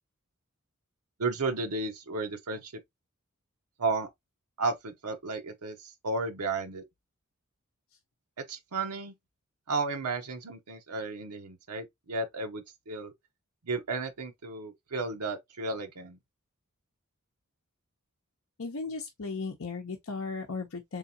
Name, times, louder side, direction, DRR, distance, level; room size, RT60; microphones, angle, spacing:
voice 1, 1.2-2.8 3.8-4.1 4.6-6.8 8.4-9.1 9.7-13.1 13.6-16.2, right 3 dB, 85° right, 0.8 m, -33 dB
voice 2, 18.6-21.0, left 4 dB, 65° left, 0.7 m, -36 dB
3.7 x 3.6 x 2.8 m
head